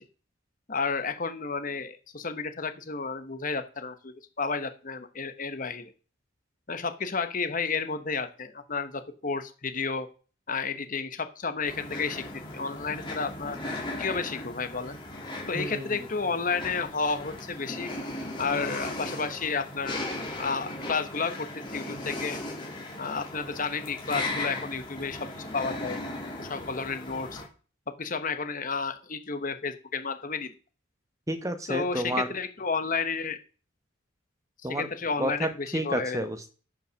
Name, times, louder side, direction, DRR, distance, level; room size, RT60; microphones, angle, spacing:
voice 1, 0.7-5.9 6.7-10.1 10.5-12.2 12.5-13.6 14.0-15.0 15.5-17.9 18.4-20.0 20.4-22.4 23.0-26.0 26.4-27.4 27.9-30.5 31.7-33.4 34.7-36.3, left 4 dB, 40° left, 9 dB, 1.0 m, -31 dB
sound 1, 11.6-27.4, left 2 dB, 25° left, 2.8 m, -37 dB
voice 2, 15.5-16.1 31.3-32.3 34.6-34.9 35.2-36.5, right 1 dB, 15° right, 9 dB, 1.1 m, -30 dB
14.0 x 5.8 x 6.3 m, 0.38 s
head